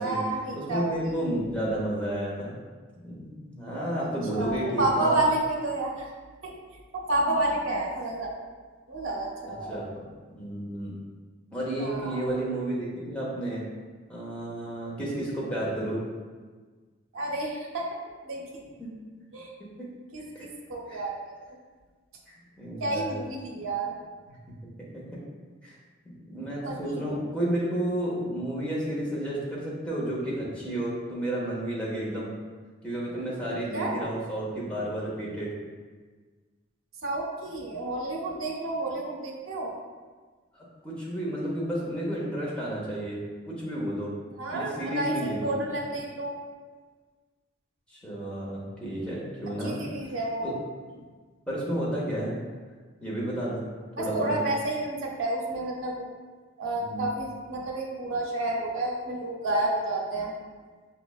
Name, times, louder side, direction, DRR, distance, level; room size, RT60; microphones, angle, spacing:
voice 1, 0.0-1.1 4.0-4.1 4.3-6.1 6.4-6.5 6.9-8.3 8.9-9.9 11.8-12.3 17.1-17.8 18.2-18.8 19.3-19.5 20.1-21.1 22.8-23.9 26.6-27.1 33.7-34.1 37.0-39.7 44.3-46.3 49.6-50.5 54.0-56.1 56.6-60.3, right 2 dB, 75° right, -2 dB, 0.6 m, -30 dB
voice 2, 0.5-2.5 3.0-5.2 9.7-9.9 10.3-10.9 11.5-13.7 14.1-16.0 18.8-18.9 20.3-20.4 20.9-21.0 22.3-23.2 24.3-24.4 25.1-25.2 25.6-25.8 26.3-32.3 32.8-35.5 40.5-44.1 44.5-45.5 47.9-49.8 50.4-50.5 50.9-51.0 51.5-52.3 53.0-53.6 54.0-54.4 56.8-57.0, right 1 dB, 5° left, -7 dB, 0.7 m, -31 dB
5.6 x 2.1 x 2.3 m, 1.4 s
head